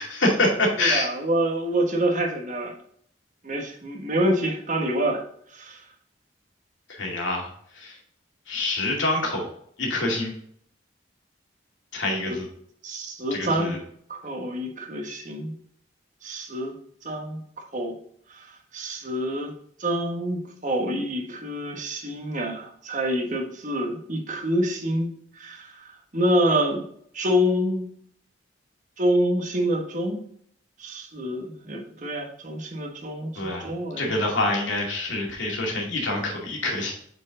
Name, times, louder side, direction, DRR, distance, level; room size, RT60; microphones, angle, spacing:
voice 1, 0.0-1.1 6.9-7.5 7.7-8.0 8.5-9.5 9.8-10.3 11.9-12.5 13.3-13.8 33.4-33.7 34.0-36.9, left 2 dB, 80° left, -1 dB, 2.3 m, -26 dB
voice 2, 0.8-2.7 3.4-5.2 5.5-5.8 12.3-12.4 12.8-13.7 14.1-15.5 16.2-16.7 17.0-17.4 17.7-17.9 18.4-18.5 18.7-19.5 19.8-25.7 26.1-26.8 27.1-27.9 29.0-30.2 30.8-34.0, equal, 40° right, 1 dB, 1.3 m, -26 dB
8.3 x 4.6 x 3.8 m, 0.66 s
head